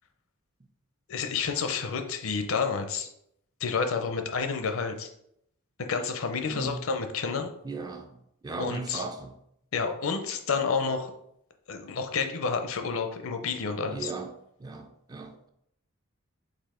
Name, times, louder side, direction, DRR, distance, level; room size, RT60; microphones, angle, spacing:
voice 1, 1.1-3.1 3.6-5.1 5.8-7.5 8.6-9.0 9.7-11.1 11.7-14.1, left 5 dB, 70° left, 0.6 m, -30 dB
voice 2, 6.5-6.8 7.6-8.1 8.4-9.3 13.9-14.3 14.6-15.5, right 3 dB, 20° right, 0.4 m, -36 dB
4.1 x 2.8 x 4.3 m
head